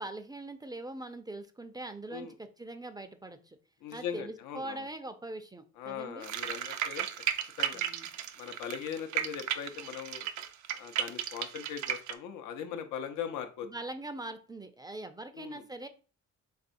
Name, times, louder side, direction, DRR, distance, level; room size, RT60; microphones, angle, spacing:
voice 1, 0.0-3.6 3.9-6.3 7.7-8.1 13.6-15.9, right 2 dB, 15° right, 9 dB, 0.4 m, -42 dB
voice 2, 3.8-4.8 5.8-7.1 7.6-7.8 8.4-10.3 10.8-13.7 15.3-15.6, left 8 dB, 85° left, 6 dB, 0.6 m, -40 dB
sound 1, 6.2-12.1, right 10 dB, 70° right, 0.5 m, -34 dB
4.1 x 3.4 x 2.6 m, 0.36 s
cardioid pair, 90°, 30 cm